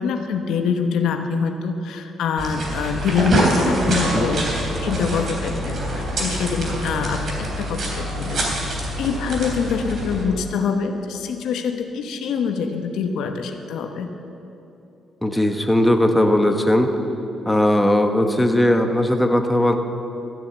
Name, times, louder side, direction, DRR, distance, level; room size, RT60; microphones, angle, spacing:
voice 1, 0.0-4.5 4.8-8.7 9.0-14.1, left 5 dB, 80° left, 5 dB, 1.0 m, -25 dB
sound 1, 2.4-10.2, right 1 dB, 55° right, 3.0 m, -25 dB
voice 2, 15.2-16.9 17.4-19.8, left 1 dB, 5° left, 5 dB, 1.0 m, -18 dB
14.0 x 7.1 x 8.1 m, 2.9 s
cardioid pair, 90°, 0 cm